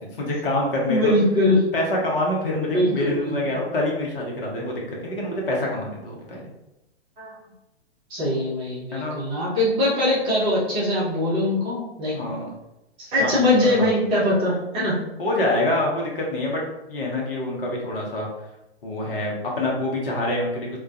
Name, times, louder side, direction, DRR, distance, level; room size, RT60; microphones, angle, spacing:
voice 1, 0.2-1.1 1.7-6.4 8.9-9.2 12.1-12.5 13.2-13.3 13.6-13.9 15.2-16.6 16.9-18.3 18.8-20.8, left 1 dB, 55° left, -2 dB, 0.8 m, -26 dB
voice 2, 0.9-1.6 2.7-3.3 7.2-7.3 8.1-12.2 13.0-15.0, left 1 dB, 15° right, -8 dB, 0.6 m, -22 dB
2.2 x 2.2 x 2.5 m, 0.93 s
figure-of-eight pair, 115°, 32 cm